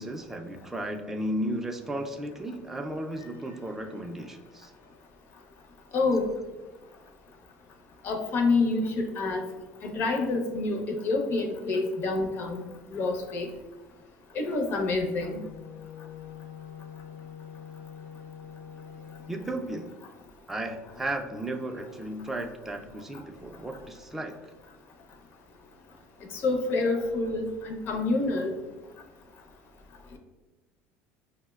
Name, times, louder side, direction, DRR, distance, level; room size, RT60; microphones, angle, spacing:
voice 1, 0.0-4.7 19.3-19.9 20.5-24.3, right 1 dB, 5° right, 3 dB, 0.3 m, -34 dB
voice 2, 5.9-6.3 8.0-9.5 9.8-12.7 12.9-13.5 14.3-15.4 26.3-28.6 30.1-30.2, left 3 dB, 45° left, 3 dB, 0.6 m, -27 dB
Wind instrument woodwind instrument, 14.9-19.4, left 9 dB, 85° left, 0.6 m, -44 dB
5.1 x 2.1 x 2.2 m, 1.2 s
cardioid pair, 135°, 5 cm